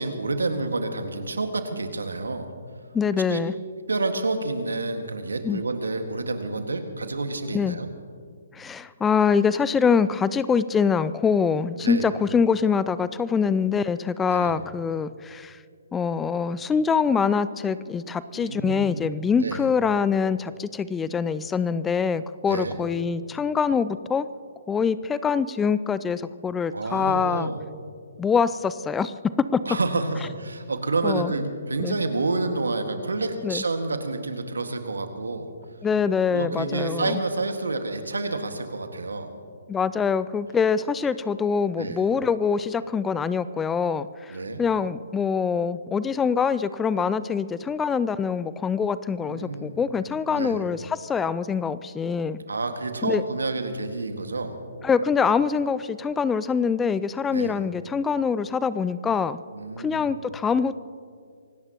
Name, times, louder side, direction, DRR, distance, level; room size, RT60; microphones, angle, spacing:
voice 1, 0.0-2.5 3.3-3.4 3.9-7.9 11.8-12.1 14.3-14.5 18.3-19.0 19.3-19.7 22.4-22.8 26.7-27.6 29.7-35.5 36.3-39.3 41.8-42.1 44.3-44.6 49.2-49.8 50.3-50.6 52.5-54.6 57.3-57.6 59.5-60.0, right 3 dB, 80° right, 6 dB, 1.8 m, -29 dB
voice 2, 2.9-3.5 5.4-5.6 7.5-7.8 8.5-15.6 15.9-24.3 24.7-27.5 28.2-29.6 31.0-31.3 31.8-32.0 33.4-33.6 35.8-37.2 39.7-52.4 53.0-53.2 54.8-59.4 59.8-60.8, left 6 dB, 10° left, 16 dB, 0.4 m, -24 dB
26.5 x 17.5 x 3.0 m, 2.2 s
figure-of-eight pair, 135°, 0 cm